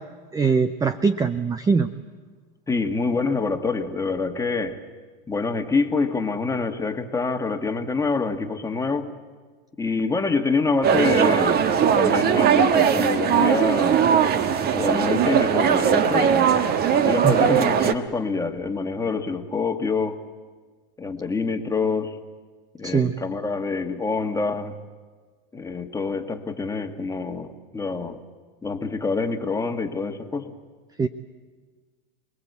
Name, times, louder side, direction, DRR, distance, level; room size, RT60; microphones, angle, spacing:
voice 1, 0.3-1.9 17.2-17.3 22.8-23.1 31.0-31.1, right 5 dB, 10° right, 13 dB, 0.7 m, -21 dB
voice 2, 2.7-4.8 5.3-9.1 9.8-14.1 14.7-16.5 17.0-20.2 21.0-22.2 22.8-24.8 25.5-28.2 28.6-30.5, left 4 dB, 10° left, 6 dB, 1.9 m, -26 dB
sound 1, 10.8-17.9, right 8 dB, 30° right, 1.5 m, -19 dB
27.5 x 20.0 x 8.3 m, 1.5 s
hypercardioid pair, 115°, 30 cm